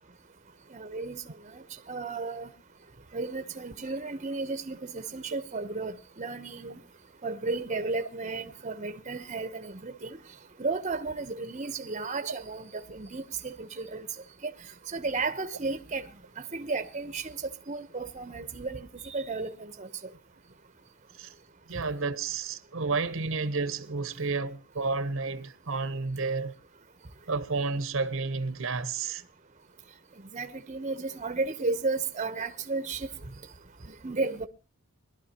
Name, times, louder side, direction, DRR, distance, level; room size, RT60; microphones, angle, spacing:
voice 1, 0.7-1.2 1.5-2.5 3.1-6.8 7.2-10.2 10.6-14.1 14.4-14.5 14.9-16.0 16.4-17.4 17.7-19.9 30.3-33.1 34.0-34.5, right 3 dB, 35° right, 0.8 m, -33 dB
voice 2, 21.7-26.5 27.3-29.2, right 4 dB, 65° right, 0.9 m, -31 dB
22.0 x 12.0 x 2.9 m
head